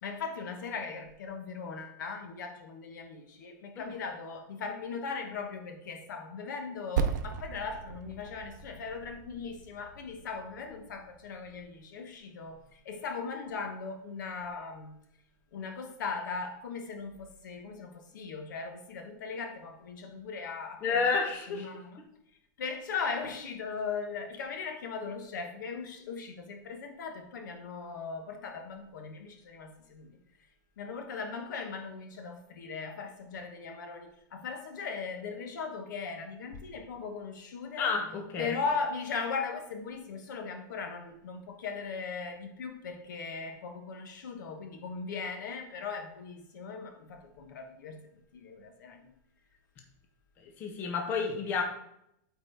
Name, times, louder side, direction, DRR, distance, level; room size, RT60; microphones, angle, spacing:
voice 1, 0.0-15.0 15.5-22.0 22.6-30.2 30.8-37.9 38.4-48.0 48.3-49.0, left 5 dB, 80° left, 1.1 m, -38 dB
Percussion, 7.0-11.8, right 6 dB, 70° right, 0.6 m, -37 dB
voice 2, 20.8-21.7 37.8-38.5 50.6-51.6, left 5 dB, 20° left, 0.6 m, -30 dB
8.4 x 4.2 x 3.4 m
supercardioid pair, 180°, 10 cm